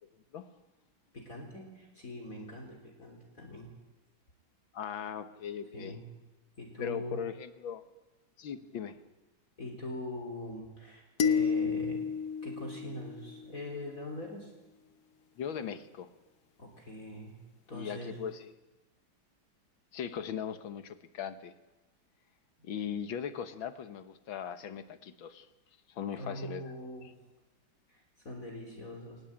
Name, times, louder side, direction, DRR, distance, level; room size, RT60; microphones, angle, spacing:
voice 1, 1.1-3.7 5.7-6.0 6.6-7.2 9.6-12.0 12.4-14.5 16.6-17.4 17.7-18.2 26.1-27.1 27.9-29.2, left 1 dB, 40° left, 0 dB, 4.0 m, -42 dB
voice 2, 4.7-6.0 6.8-7.8 8.4-9.0 15.4-16.1 17.7-18.5 19.9-21.5 22.6-25.5 25.9-26.6, left 8 dB, 75° left, 11 dB, 2.0 m, -39 dB
sound 1, 11.2-13.6, left 6 dB, 55° left, 1.5 m, -31 dB
22.5 x 19.5 x 8.8 m, 1.1 s
omnidirectional pair, 2.2 m